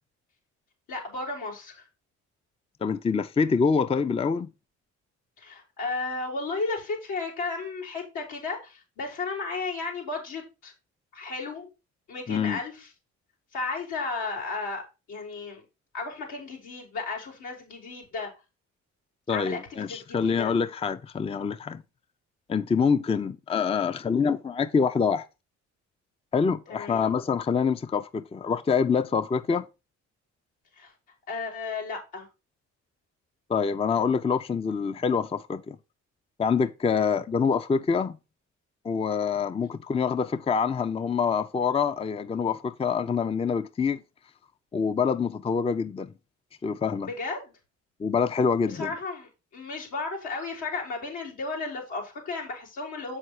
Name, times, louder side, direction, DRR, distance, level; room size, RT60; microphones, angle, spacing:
voice 1, 0.9-1.8 5.4-10.7 11.1-11.7 12.1-12.9 13.5-14.8 15.1-15.6 15.9-18.3 19.3-20.5 26.7-27.1 30.8-30.9 31.3-32.3 36.9-37.1 47.0-47.5 48.7-53.2, left 3 dB, 85° left, 4.5 m, -34 dB
voice 2, 2.8-4.5 12.3-12.6 19.3-21.8 22.5-25.3 26.3-29.7 33.5-35.8 36.4-38.2 38.8-44.0 44.7-46.1 46.6-47.1 48.0-48.9, left 5 dB, 20° left, 0.4 m, -26 dB
7.7 x 5.7 x 4.8 m
cardioid pair, 90°, 30 cm